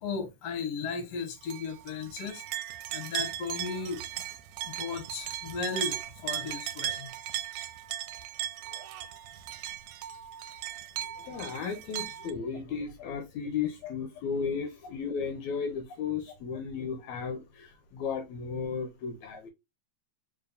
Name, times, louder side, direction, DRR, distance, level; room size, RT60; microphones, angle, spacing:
voice 1, 0.0-4.0 4.7-7.1 13.8-13.9, left 5 dB, 60° left, 2.3 m, -36 dB
sound 1, 1.5-12.3, right 12 dB, 80° right, 2.0 m, -37 dB
voice 2, 11.2-19.5, left 6 dB, 75° left, 2.0 m, -34 dB
4.6 x 4.4 x 2.5 m
omnidirectional pair, 3.5 m